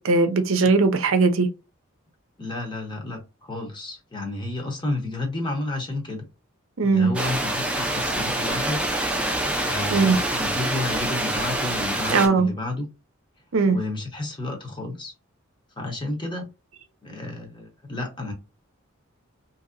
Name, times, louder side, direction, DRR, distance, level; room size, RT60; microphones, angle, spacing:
voice 1, 0.0-1.5 6.8-7.1 9.9-10.2 12.1-12.5 13.5-13.8, right 4 dB, 70° right, 0.5 m, -19 dB
voice 2, 2.4-6.2 6.8-8.8 9.7-12.9 13.7-15.1 15.8-16.5 17.0-18.3, left 2 dB, 20° left, 0.8 m, -31 dB
sound 1, 7.1-12.3, right 1 dB, 5° right, 0.5 m, -26 dB
2.8 x 2.7 x 2.5 m
head